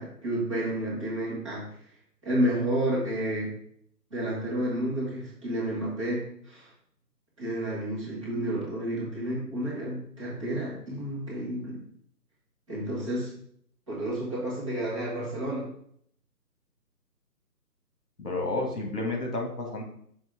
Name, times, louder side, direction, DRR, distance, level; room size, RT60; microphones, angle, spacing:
voice 1, 0.0-1.6 2.2-3.5 4.1-6.7 7.4-11.8 12.7-13.3 13.9-15.7, right 1 dB, 20° right, -8 dB, 1.5 m, -30 dB
voice 2, 18.2-19.8, left 2 dB, 65° left, 1 dB, 2.0 m, -31 dB
6.2 x 4.8 x 3.6 m, 0.66 s
figure-of-eight pair, 165°, 50 cm